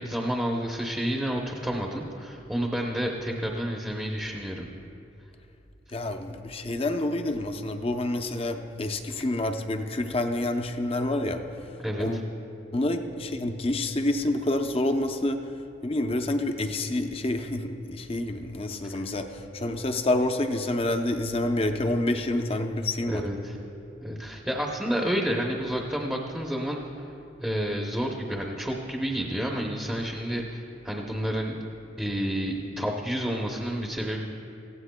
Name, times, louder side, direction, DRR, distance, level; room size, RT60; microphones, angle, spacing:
voice 1, 0.0-4.7 11.8-12.2 23.0-23.6 24.0-26.8 27.4-31.5 32.0-34.2, equal, 5° right, -1 dB, 0.7 m, -30 dB
voice 2, 5.9-12.3 12.7-15.5 15.8-23.2, left 1 dB, 30° left, 6 dB, 0.6 m, -28 dB
18.0 x 15.0 x 2.2 m, 2.8 s
head